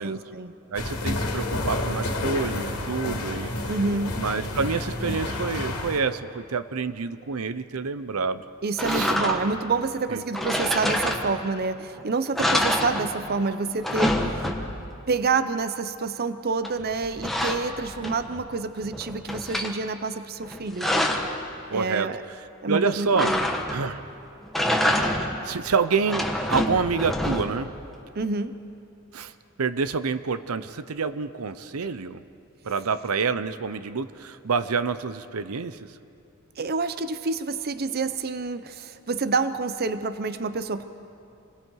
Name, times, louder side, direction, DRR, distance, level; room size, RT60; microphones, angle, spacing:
voice 1, 0.0-0.5 3.7-4.2 8.6-14.5 15.1-20.9 21.7-22.2 22.6-23.4 28.1-28.6 36.6-40.9, right 4 dB, 45° right, 12 dB, 0.7 m, -28 dB
sound 1, 0.7-6.0, left 1 dB, 85° left, 2.3 m, -29 dB
voice 2, 0.7-3.5 4.2-8.4 8.9-9.1 10.1-10.2 21.7-22.2 22.7-23.3 23.7-24.0 25.4-27.7 29.1-29.3 29.6-32.2 32.6-35.8, right 5 dB, 85° right, 12 dB, 0.7 m, -27 dB
sound 2, 8.8-9.7 10.3-11.6 12.0-12.1 12.3-13.4 13.7-14.9 16.6-18.4 18.8-19.7 20.4-21.4 23.2-24.0 24.4-25.4 25.9-27.7, left 1 dB, ahead, 1.4 m, -26 dB
28.0 x 21.5 x 4.7 m, 2.6 s
head